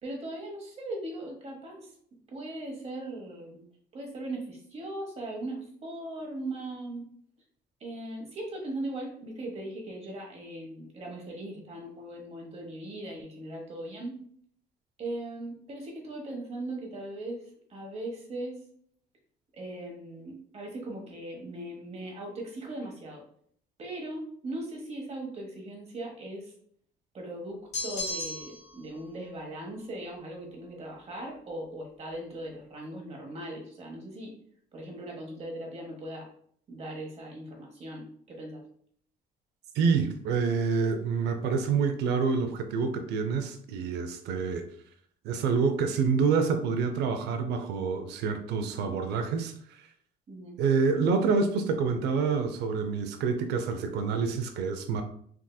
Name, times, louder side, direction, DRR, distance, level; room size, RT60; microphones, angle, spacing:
voice 1, 0.0-1.9 2.3-3.7 3.9-7.1 7.8-14.2 15.0-18.6 19.5-23.2 23.8-26.5 27.1-34.3 34.7-36.3 36.7-38.6 50.3-50.6, right 1 dB, 40° right, 0 dB, 1.1 m, -39 dB
sound 1, 27.7-28.7, left 2 dB, 40° left, 0.7 m, -34 dB
voice 2, 39.8-44.6 45.2-49.5 50.6-55.0, right 5 dB, 80° right, 8 dB, 0.5 m, -27 dB
3.6 x 2.6 x 2.3 m, 0.62 s
cardioid pair, 110°, 17 cm